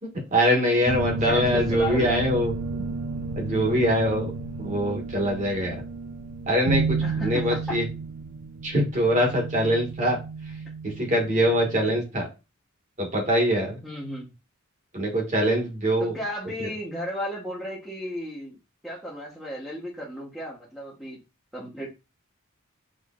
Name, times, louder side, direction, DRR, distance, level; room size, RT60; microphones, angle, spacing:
voice 1, 0.0-2.5 3.4-4.3 4.6-5.8 6.5-7.0 7.2-7.8 8.6-10.2 10.8-12.3 13.0-13.8 14.9-16.2, equal, 35° right, 0 dB, 1.4 m, -23 dB
voice 2, 0.7-2.3 7.0-7.8 13.8-14.3 16.0-18.6 18.8-21.2 21.5-21.9, equal, ahead, -7 dB, 1.0 m, -34 dB
sound 1, 0.9-12.0, right 4 dB, 75° right, 0.5 m, -32 dB
6.4 x 3.2 x 2.3 m, 0.28 s
head